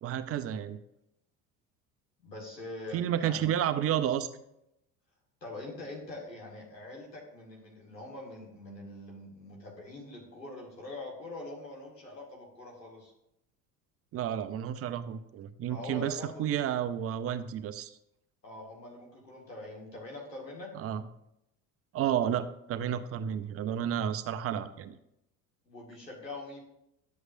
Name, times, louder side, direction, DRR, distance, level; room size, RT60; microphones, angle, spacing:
voice 1, 0.0-0.8 2.9-4.3 14.1-17.9 20.8-21.0 21.9-25.0, right 10 dB, 30° right, 12 dB, 0.5 m, -31 dB
voice 2, 2.2-3.5 5.4-13.1 15.6-16.5 18.4-20.7 25.7-26.6, left 2 dB, 85° left, -2 dB, 2.0 m, -43 dB
11.5 x 7.9 x 2.6 m, 0.81 s
figure-of-eight pair, 65°, 48 cm